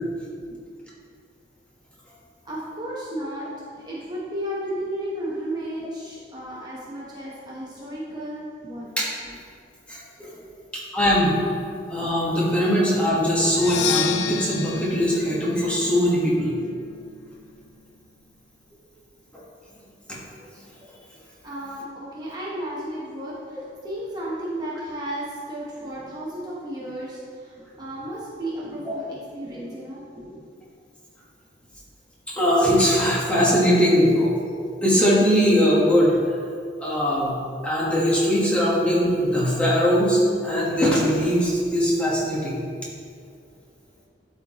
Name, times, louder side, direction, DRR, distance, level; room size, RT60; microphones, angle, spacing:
voice 1, 2.4-9.0 10.3-10.4 21.4-30.4, right 1 dB, 25° right, -7 dB, 1.1 m, -33 dB
voice 2, 9.9-10.3 10.7-11.4 11.9-16.6 32.4-34.3 34.6-36.2 36.8-37.4 37.6-42.6, equal, 5° left, -7 dB, 1.3 m, -21 dB
Percussion, 13.5-17.3, left 8 dB, 75° left, 0.4 m, -31 dB
11.5 x 4.4 x 3.0 m, 2.2 s
head